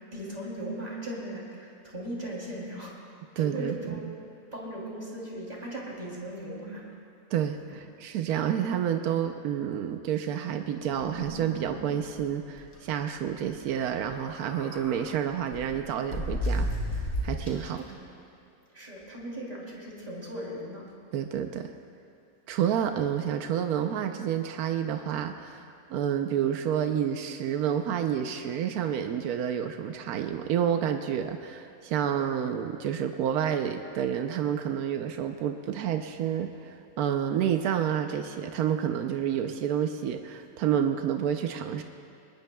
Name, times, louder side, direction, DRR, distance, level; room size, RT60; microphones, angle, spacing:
voice 1, 0.1-2.9 3.4-4.0 4.5-6.8 18.0-18.1 18.7-20.8, right 1 dB, 25° right, -4 dB, 3.1 m, -38 dB
voice 2, 3.4-4.2 7.3-16.7 16.9-18.0 21.1-21.7 22.5-41.8, right 9 dB, 85° right, 6 dB, 1.1 m, -29 dB
sound 1, 10.8-11.8 12.2-12.3 12.6-12.8 14.0-15.0 15.5-17.8, equal, 70° left, 3.6 m, -33 dB
22.5 x 19.5 x 2.3 m, 2.5 s
omnidirectional pair, 1.5 m